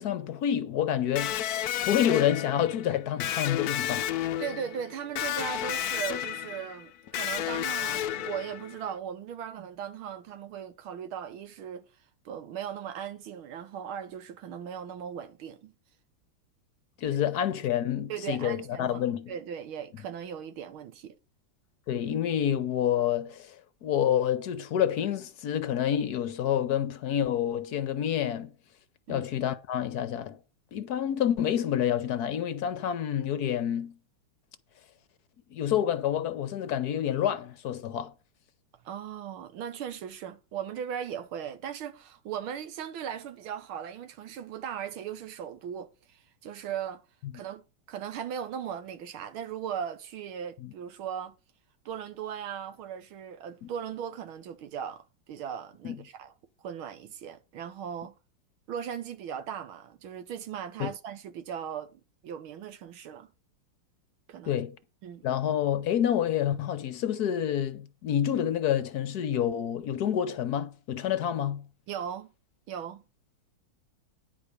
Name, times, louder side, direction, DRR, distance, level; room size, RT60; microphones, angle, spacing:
voice 1, 0.0-4.1 17.0-19.3 21.9-23.6 23.8-28.5 29.1-30.4 30.7-34.0 35.5-38.1 50.6-50.7 53.6-53.7 55.8-56.0 60.8-60.9 64.4-64.8 65.2-71.6, left 10 dB, 65° left, 1.0 m, -28 dB
Electric guitar, 1.2-8.9, left 11 dB, 90° left, 0.8 m, -32 dB
voice 2, 4.4-11.9 12.3-15.7 18.1-19.0 19.3-21.2 29.1-29.3 38.8-47.0 47.3-51.4 51.9-56.3 56.6-58.2 58.7-63.3 64.3-64.6 65.0-65.3 71.9-72.3 72.7-73.0, right 8 dB, 80° right, 1.9 m, -38 dB
9.9 x 4.9 x 6.5 m
omnidirectional pair, 2.3 m